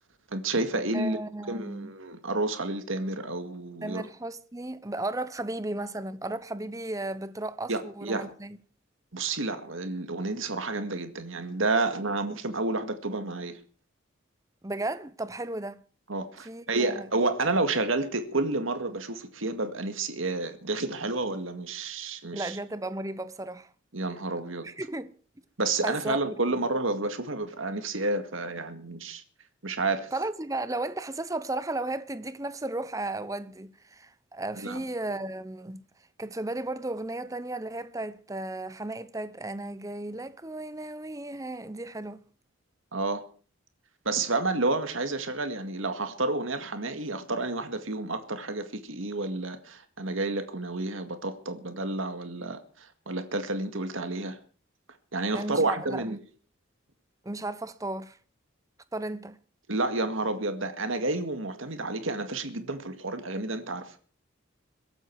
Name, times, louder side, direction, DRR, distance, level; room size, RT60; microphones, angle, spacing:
voice 1, 0.3-1.2 1.5-4.0 7.7-8.3 9.1-13.6 16.1-22.6 23.9-24.7 25.6-29.2 29.6-30.1 34.6-34.8 42.9-43.3 44.1-54.4 55.1-56.2 59.7-64.0, right 2 dB, 70° right, 2.0 m, -30 dB
voice 2, 0.9-1.9 3.8-8.6 14.6-15.8 16.4-17.1 22.3-23.7 24.6-25.1 25.8-26.2 30.1-35.8 36.2-42.2 55.3-56.2 57.2-58.2 58.9-59.4, right 2 dB, 15° right, 0.7 m, -34 dB
22.5 x 12.5 x 4.7 m
head